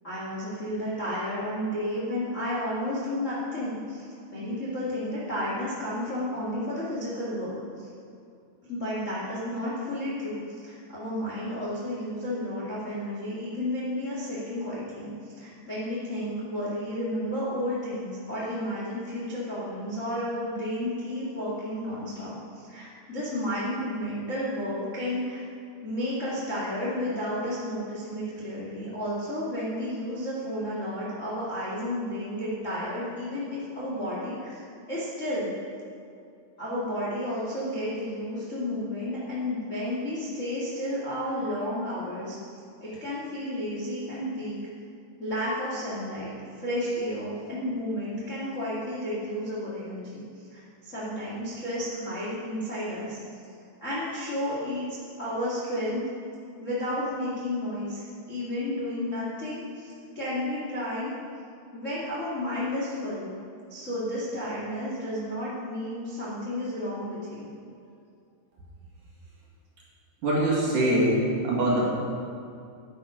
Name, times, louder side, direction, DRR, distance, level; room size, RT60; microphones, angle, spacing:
voice 1, 0.0-4.0 4.3-7.9 8.7-25.4 25.8-34.5 34.9-35.5 36.6-42.3 42.8-44.6 45.2-50.2 50.5-53.2 53.8-56.0 56.6-61.2 61.7-63.3 63.7-67.5, left 1 dB, 35° left, -7 dB, 1.1 m, -32 dB
voice 2, 70.2-71.8, right 1 dB, 55° right, -5 dB, 2.9 m, -23 dB
11.0 x 10.5 x 5.0 m, 2.4 s
omnidirectional pair, 5.2 m